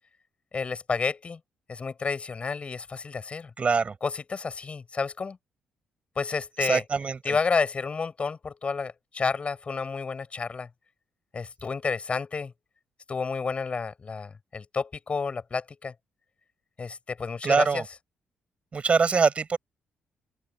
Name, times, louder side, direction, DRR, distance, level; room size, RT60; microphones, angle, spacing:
voice 1, 0.5-1.4 1.7-3.5 4.0-5.4 6.1-6.8 7.2-10.7 11.3-12.5 13.1-15.9 16.8-17.8, left 5 dB, 40° left, 6.7 m, -30 dB
voice 2, 3.6-3.9 6.6-7.2 17.4-17.8 18.7-19.6, right 5 dB, 40° right, 6.2 m, -23 dB
open air
cardioid pair, 80°, 3 cm